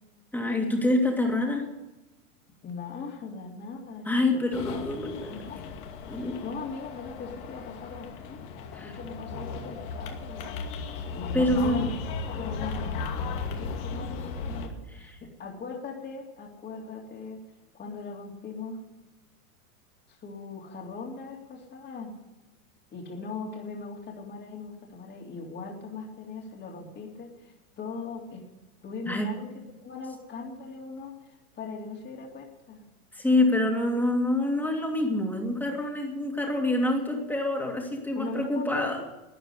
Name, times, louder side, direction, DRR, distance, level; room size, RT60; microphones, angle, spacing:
voice 1, 0.3-1.7 4.0-5.3 6.1-6.4 8.7-8.9 11.3-11.9 15.0-15.1 29.1-29.3 33.1-39.0, left 1 dB, 5° left, 1 dB, 2.9 m, -26 dB
voice 2, 2.6-4.1 4.3-5.0 5.3-5.6 6.1-8.4 8.8-10.6 11.1-11.9 12.2-17.4 17.7-18.8 20.2-22.1 22.9-28.4 28.8-32.8 38.1-39.0, left 4 dB, 25° left, 1 dB, 3.2 m, -39 dB
sound 1, 4.5-14.7, left 4 dB, 45° left, 2.4 m, -36 dB
13.0 x 9.8 x 9.9 m, 1.1 s
hypercardioid pair, 130°, 44 cm